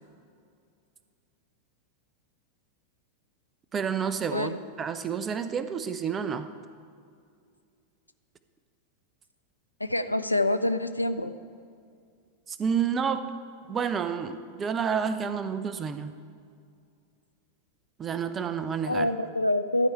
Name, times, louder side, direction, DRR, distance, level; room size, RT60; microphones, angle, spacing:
voice 1, 3.7-6.5 12.5-13.3 13.7-16.1 18.0-19.1, right 7 dB, 20° right, 11 dB, 0.6 m, -29 dB
voice 2, 9.8-11.3 18.9-19.9, left 1 dB, 85° left, 10 dB, 0.4 m, -26 dB
12.5 x 4.7 x 8.1 m, 2.3 s
figure-of-eight pair, 90°, 0 cm